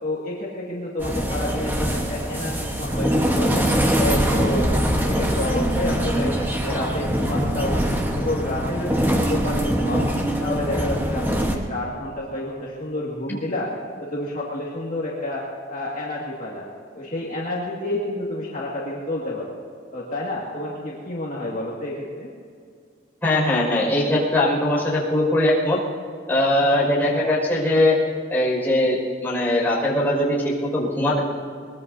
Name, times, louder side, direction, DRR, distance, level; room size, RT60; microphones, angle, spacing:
voice 1, 0.0-3.7 3.9-6.4 6.6-10.1 10.4-13.7 14.0-15.4 15.7-16.7 16.9-19.6 19.9-22.3, left 1 dB, 40° left, -5 dB, 2.0 m, -29 dB
sound 1, 1.0-11.6, equal, 10° right, 1.2 m, -23 dB
voice 2, 23.2-25.8 26.3-28.0 28.3-31.2, left 1 dB, 10° left, -6 dB, 5.4 m, -20 dB
23.0 x 20.5 x 2.7 m, 2.3 s
head